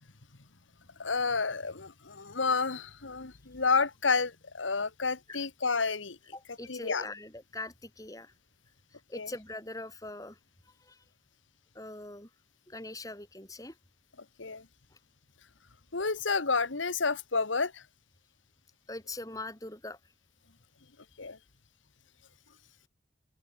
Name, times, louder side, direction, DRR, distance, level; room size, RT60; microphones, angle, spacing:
voice 1, 1.0-6.2 6.7-7.1 9.1-9.3 14.4-14.7 15.9-17.8 21.2-21.4, left 4 dB, 90° left, 1.6 m, -30 dB
voice 2, 6.3-8.3 8.9-10.4 10.7-11.0 11.7-12.3 12.7-13.8 18.9-20.0, left 2 dB, 20° left, 7.5 m, -42 dB
open air
head